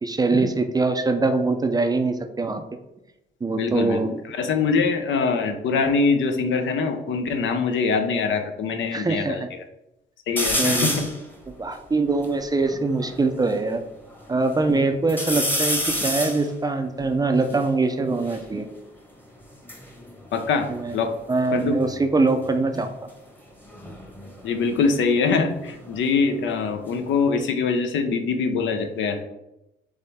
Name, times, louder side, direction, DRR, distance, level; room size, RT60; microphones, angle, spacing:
voice 1, 0.0-2.6 3.4-4.1 8.9-9.5 10.6-10.9 11.6-13.8 14.3-18.7 20.7-21.0 21.3-22.9, right 3 dB, 20° right, 7 dB, 0.4 m, -23 dB
voice 2, 3.6-4.0 4.3-9.4 10.3-11.1 20.3-21.1 21.5-21.8 24.4-29.2, left 4 dB, 75° left, 6 dB, 0.6 m, -23 dB
sound 1, 10.4-11.2 11.8-11.9 12.0-13.6 14.1-14.7 15.1-18.5 19.4-21.3 21.6-22.1 23.6-26.3 26.6-27.4, left 1 dB, 10° left, 1.0 m, -30 dB
3.6 x 3.2 x 4.1 m, 0.90 s
cardioid pair, 90°, 20 cm